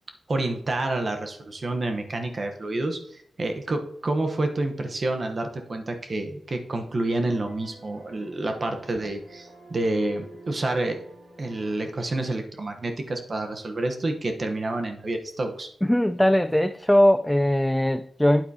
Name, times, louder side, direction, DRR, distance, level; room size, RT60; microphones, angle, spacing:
voice 1, 0.3-11.0 11.4-15.7, right 2 dB, 50° right, 1.0 m, -28 dB
sound 1, 6.8-11.9, right 2 dB, 90° right, 2.8 m, -49 dB
voice 2, 15.8-18.5, left 1 dB, 10° left, 0.3 m, -20 dB
9.0 x 8.0 x 2.8 m
cardioid pair, 65°, 0 cm